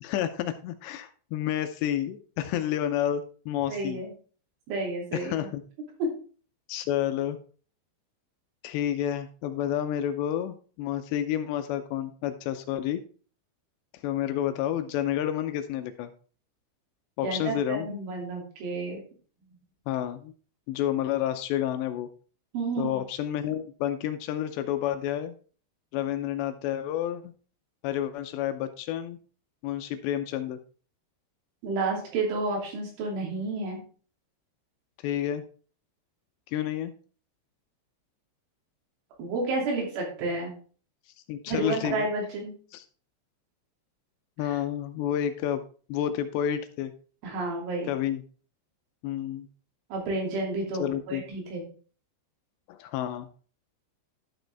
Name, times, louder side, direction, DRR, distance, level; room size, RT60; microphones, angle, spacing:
voice 1, 0.0-4.0 5.1-5.6 6.7-7.4 8.6-13.0 14.0-16.1 17.2-18.0 19.9-20.3 20.7-22.1 22.8-25.3 25.9-27.3 27.8-29.2 29.6-30.6 35.0-35.4 36.5-36.9 41.3-42.1 42.7-42.8 44.4-45.6 45.9-46.9 47.9-48.2 49.0-49.5 50.8-51.2 52.7-53.3, left 11 dB, 80° left, 9 dB, 2.7 m, -30 dB
voice 2, 3.7-4.1 4.7-5.5 6.0-6.1 17.2-19.0 22.5-23.0 31.6-33.8 39.2-40.5 41.5-42.5 44.5-44.6 47.2-47.9 49.9-51.6, right 3 dB, 85° right, -1 dB, 5.2 m, -30 dB
12.0 x 6.5 x 3.4 m, 0.40 s
omnidirectional pair, 5.3 m